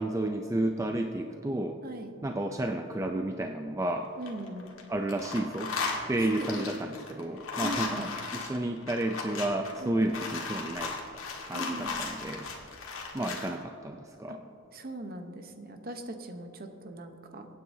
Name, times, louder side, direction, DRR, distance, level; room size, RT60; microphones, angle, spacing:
voice 1, 0.0-1.8 2.2-4.1 4.9-5.7 6.1-11.0 11.4-12.5 13.1-14.4, right 1 dB, 15° right, 4 dB, 0.4 m, -31 dB
sound 1, 4.0-4.8 5.1-13.5, left 4 dB, 70° left, 1.7 m, -36 dB
voice 2, 4.2-4.7 6.2-6.6 7.6-8.1 9.8-10.1 11.5-11.9 14.3-14.4 14.7-17.5, right 1 dB, 45° right, 6 dB, 0.9 m, -39 dB
23.5 x 9.3 x 2.7 m, 2.9 s
head